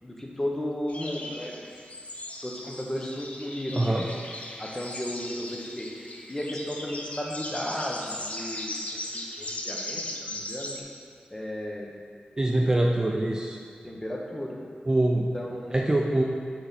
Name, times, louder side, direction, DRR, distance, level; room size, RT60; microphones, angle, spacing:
voice 1, 0.0-1.7 2.4-4.1 4.6-10.8 11.3-11.9 13.8-14.6 15.3-15.9, left 1 dB, 15° left, -2 dB, 0.9 m, -34 dB
sound 1, 0.9-10.8, left 1 dB, 45° left, 0.7 m, -38 dB
voice 2, 3.7-4.1 12.4-13.6 14.9-15.3 15.7-16.2, right 1 dB, 20° right, 0 dB, 0.4 m, -24 dB
7.8 x 3.5 x 4.1 m, 2.2 s
wide cardioid pair, 80°, 3 cm